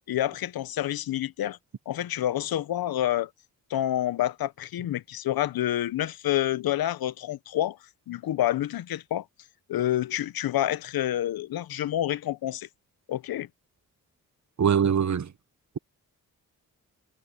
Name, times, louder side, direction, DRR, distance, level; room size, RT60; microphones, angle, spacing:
voice 1, 0.1-1.6 1.9-3.3 3.7-7.8 8.1-9.2 9.7-12.7 13.1-13.5, left 12 dB, 75° left, 0.9 m, -28 dB
voice 2, 14.6-15.3, right 7 dB, 50° right, 1.3 m, -22 dB
supercardioid pair, 50°, 36 cm